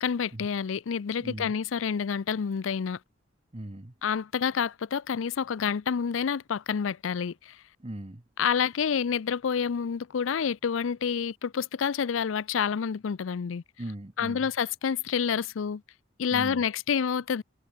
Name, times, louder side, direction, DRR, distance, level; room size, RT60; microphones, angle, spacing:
voice 1, 0.0-3.0 4.0-7.6 8.4-13.6 14.2-15.8 16.2-17.4, left 7 dB, 75° left, 0.5 m, -28 dB
voice 2, 1.2-1.5 3.5-3.9 7.8-8.2 13.8-14.5 16.3-16.6, right 1 dB, 30° right, 1.2 m, -39 dB
head